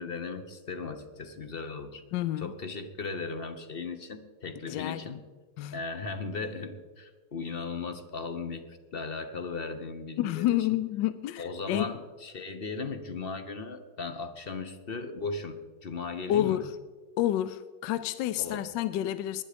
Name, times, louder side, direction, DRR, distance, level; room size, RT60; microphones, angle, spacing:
voice 1, 0.0-2.0 2.4-5.2 5.7-10.4 11.4-16.6 18.4-18.6, left 4 dB, 45° left, 0.8 m, -37 dB
voice 2, 2.1-2.5 4.7-5.1 5.6-5.8 10.2-11.9 16.3-16.7 17.2-19.4, left 13 dB, 75° left, 1.1 m, -29 dB
19.5 x 10.5 x 5.1 m
omnidirectional pair, 2.3 m